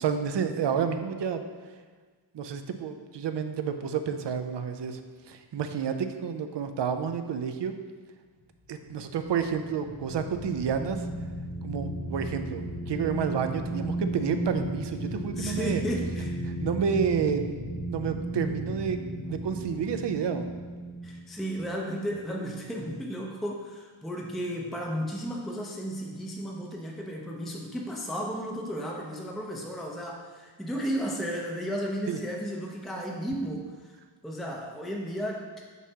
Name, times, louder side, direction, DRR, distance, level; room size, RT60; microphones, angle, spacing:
voice 1, 0.0-1.4 2.3-5.0 5.3-7.7 8.7-11.1 11.6-15.8 16.5-17.6 17.9-19.0 19.3-20.5 32.1-32.2, right 7 dB, 60° right, 8 dB, 0.6 m, -30 dB
sound 1, 8.8-22.4, right 1 dB, 90° right, 1.8 m, -35 dB
voice 2, 15.4-16.3 21.0-33.9 34.2-35.6, equal, ahead, -1 dB, 0.6 m, -34 dB
6.1 x 5.4 x 2.8 m, 1.4 s
wide cardioid pair, 75°, 48 cm